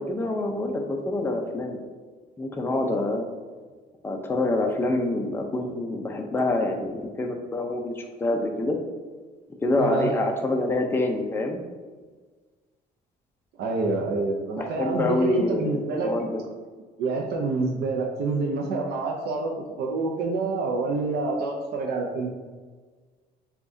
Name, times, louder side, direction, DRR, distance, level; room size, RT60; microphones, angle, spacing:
voice 1, 0.0-1.8 2.4-3.3 4.0-8.8 9.6-11.6 14.6-16.3, left 2 dB, 15° left, 2 dB, 0.5 m, -26 dB
voice 2, 9.8-10.1 13.6-16.1 17.0-22.3, right 3 dB, 75° right, 0 dB, 0.6 m, -27 dB
7.0 x 2.4 x 2.6 m, 1.4 s
cardioid pair, 110°, 17 cm